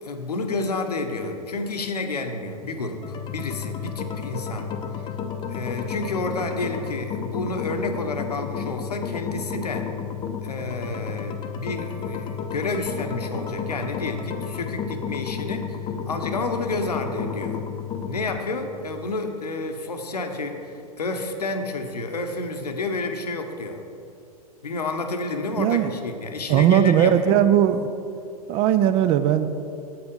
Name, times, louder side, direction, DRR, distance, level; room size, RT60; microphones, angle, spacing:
voice 1, 0.0-4.7 5.0-5.1 5.5-9.9 10.4-17.6 18.1-23.8 24.6-27.4, left 2 dB, 80° left, 5 dB, 0.9 m, -30 dB
sound 1, 3.0-18.4, left 7 dB, 25° left, 0.6 m, -32 dB
voice 2, 25.6-25.9 26.5-27.9 28.5-29.5, right 10 dB, 30° right, 12 dB, 0.4 m, -18 dB
7.8 x 5.8 x 5.4 m, 2.6 s
figure-of-eight pair, 105°, 20 cm